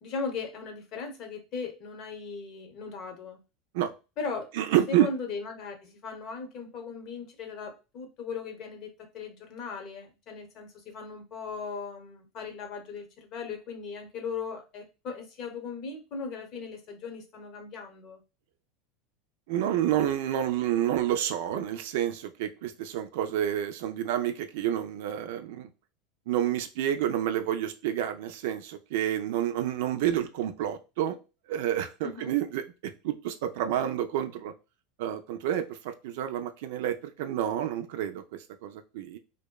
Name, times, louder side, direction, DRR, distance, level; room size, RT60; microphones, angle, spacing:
voice 1, 0.0-3.4 4.2-4.5 4.9-18.2 32.0-32.3, left 5 dB, 50° left, 4 dB, 0.8 m, -38 dB
voice 2, 4.6-5.1 19.5-25.7 26.3-31.2 31.5-32.6 33.0-34.5 35.0-38.2 38.6-39.2, right 11 dB, 70° right, 8 dB, 0.4 m, -29 dB
2.7 x 2.1 x 2.2 m, 0.29 s
hypercardioid pair, 90°, 0 cm